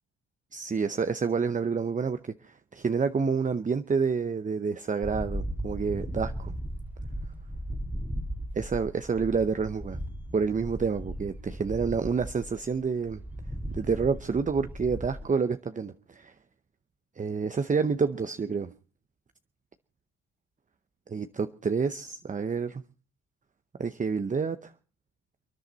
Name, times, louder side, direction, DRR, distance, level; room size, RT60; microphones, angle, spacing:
voice 1, 0.5-6.5 8.5-10.0 10.3-13.2 13.7-16.3 17.2-18.7 21.1-22.8 23.8-24.7, right 5 dB, 25° right, 10 dB, 0.8 m, -28 dB
sound 1, 5.0-15.2, equal, 5° right, 2.2 m, -37 dB
29.5 x 10.5 x 4.1 m, 0.38 s
cardioid pair, 90°, 30 cm